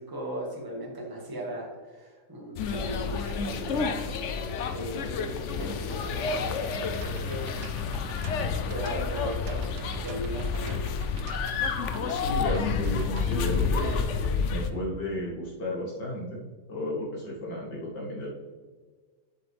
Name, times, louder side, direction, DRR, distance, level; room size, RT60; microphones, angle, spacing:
voice 1, 0.0-4.1 4.7-7.6 8.7-10.9, right 1 dB, 15° right, -3 dB, 1.7 m, -38 dB
sound 1, 2.6-14.7, left 5 dB, 60° left, 0.8 m, -30 dB
sound 2, 7.0-14.3, right 6 dB, 75° right, 1.3 m, -47 dB
voice 2, 12.3-14.0 14.5-16.4 16.7-18.3, left 1 dB, 90° left, -4 dB, 2.9 m, -33 dB
7.7 x 7.5 x 3.5 m, 1.4 s
omnidirectional pair, 1.8 m